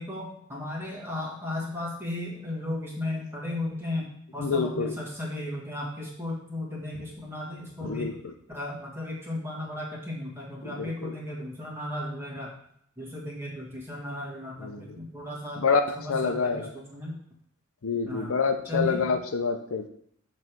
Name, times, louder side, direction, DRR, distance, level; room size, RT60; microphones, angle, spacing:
voice 1, 0.0-8.1 8.5-12.5 13.0-15.6 15.9-17.2 18.0-18.3 18.6-19.0, left 1 dB, 10° right, -3 dB, 1.6 m, -35 dB
voice 2, 4.4-4.9 7.8-8.3 10.6-11.1 14.6-14.9 15.6-16.7 17.8-19.9, left 5 dB, 80° left, 7 dB, 0.6 m, -27 dB
7.3 x 3.3 x 5.9 m, 0.68 s
head